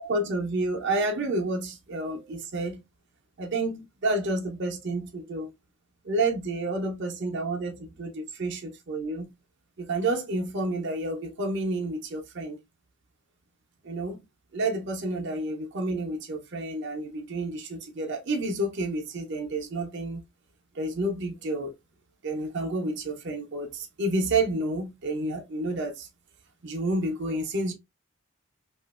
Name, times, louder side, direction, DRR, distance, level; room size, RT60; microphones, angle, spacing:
voice 1, 0.0-2.8 3.4-5.5 6.0-9.3 9.8-12.6 13.8-14.2 14.5-20.2 20.8-21.7 22.2-26.1 26.6-27.7, right 2 dB, 55° right, 0.7 m, -30 dB
2.9 x 2.5 x 2.3 m
head